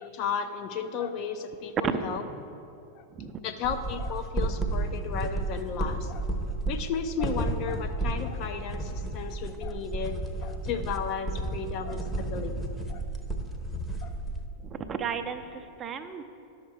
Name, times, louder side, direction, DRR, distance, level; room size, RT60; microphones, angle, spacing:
voice 1, 0.0-2.2 2.9-3.0 3.4-6.3 6.7-12.5 12.9-13.0 14.0-14.2, left 6 dB, 40° left, 7 dB, 0.6 m, -34 dB
sound 1, 3.6-14.5, right 2 dB, 5° left, 0.9 m, -32 dB
voice 2, 14.6-16.2, right 6 dB, 25° right, 7 dB, 0.6 m, -33 dB
11.0 x 6.5 x 4.7 m, 2.6 s
figure-of-eight pair, 90°, 0 cm